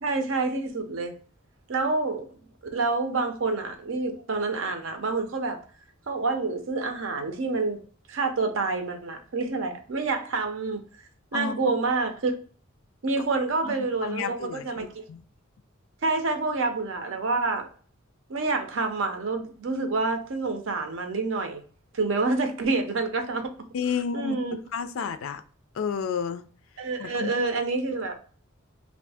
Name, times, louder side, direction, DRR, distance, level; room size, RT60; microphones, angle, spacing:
voice 1, 0.0-1.2 1.7-2.3 2.7-5.6 6.1-7.8 8.1-10.8 11.3-12.4 13.0-15.0 16.0-17.7 18.3-21.6 21.9-23.5 24.1-24.6 26.8-28.1, right 3 dB, 65° right, 0.6 m, -27 dB
voice 2, 11.3-11.7 13.6-13.8 14.0-15.2 23.7-24.4 24.7-25.4 25.7-26.5 27.0-27.3, left 6 dB, 80° left, 0.4 m, -31 dB
2.6 x 2.6 x 3.4 m
head